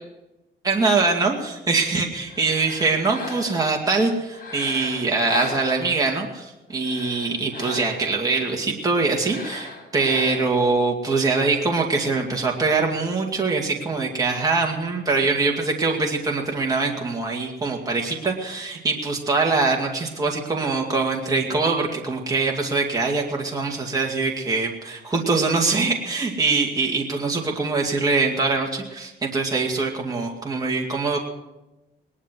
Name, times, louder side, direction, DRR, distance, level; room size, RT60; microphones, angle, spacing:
voice 1, 0.6-31.2, right 3 dB, 20° right, -1 dB, 2.3 m, -23 dB
sound 1, 2.2-3.7 4.3-6.2 6.7-8.2 9.1-10.7, left 3 dB, 45° left, 6.5 m, -37 dB
20.0 x 11.0 x 6.2 m, 0.98 s
cardioid pair, 120°, 20 cm